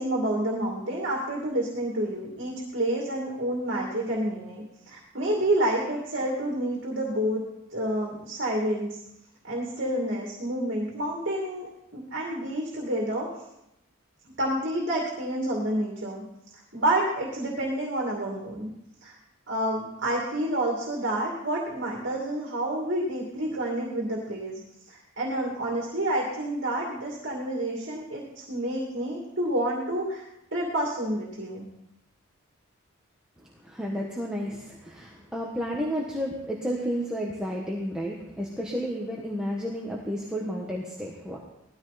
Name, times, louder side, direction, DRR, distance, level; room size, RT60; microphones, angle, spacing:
voice 1, 0.0-7.4 7.7-9.0 9.4-13.3 14.4-16.2 16.7-18.7 19.0-19.1 19.5-24.6 24.9-30.2 30.5-31.7, right 1 dB, 55° right, -2 dB, 2.6 m, -29 dB
voice 2, 33.6-41.4, equal, 5° right, -3 dB, 1.4 m, -31 dB
18.5 x 13.5 x 4.3 m, 0.85 s
head